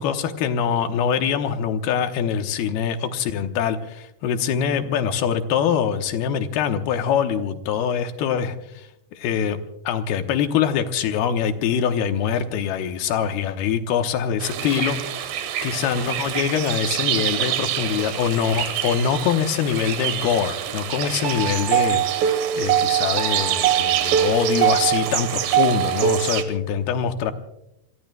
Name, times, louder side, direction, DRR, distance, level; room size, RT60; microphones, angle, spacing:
voice 1, 0.0-8.9 9.1-9.6 9.9-15.3 15.6-27.3, left 8 dB, 75° left, 7 dB, 2.8 m, -24 dB
sound 1, 14.4-26.4, right 10 dB, 70° right, 2.7 m, -23 dB
28.5 x 23.0 x 2.2 m, 0.83 s
omnidirectional pair, 4.7 m